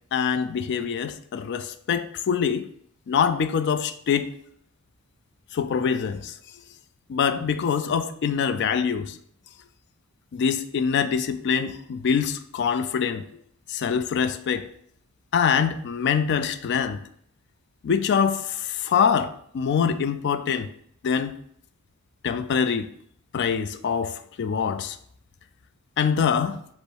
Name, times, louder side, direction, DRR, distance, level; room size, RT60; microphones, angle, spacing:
voice 1, 0.1-2.7 3.1-4.3 5.5-6.3 7.1-9.2 10.3-13.2 13.7-14.7 15.3-17.0 17.8-20.7 21.0-21.3 22.2-22.9 23.3-25.0 26.0-26.6, left 6 dB, 50° left, 0.3 m, -24 dB
5.2 x 2.0 x 4.6 m
head